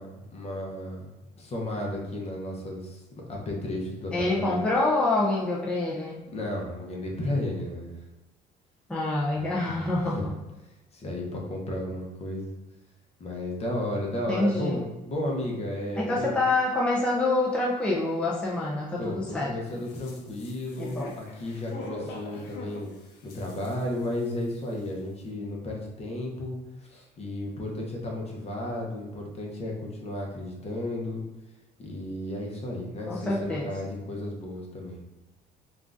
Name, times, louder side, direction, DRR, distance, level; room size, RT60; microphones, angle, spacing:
voice 1, 0.0-4.7 6.3-8.0 9.4-10.3 10.9-12.4 13.2-16.4 19.0-22.9 23.2-31.2 31.8-35.0, left 1 dB, 40° left, -1 dB, 0.8 m, -33 dB
voice 2, 4.1-6.3 8.9-10.3 14.3-14.8 16.0-19.5 20.8-21.1 33.1-33.7, left 2 dB, 5° left, -5 dB, 0.5 m, -26 dB
sound 1, 19.7-24.5 24.8-24.9, left 2 dB, 90° left, 0.5 m, -44 dB
3.5 x 2.4 x 2.5 m, 1.1 s
cardioid pair, 110°, 17 cm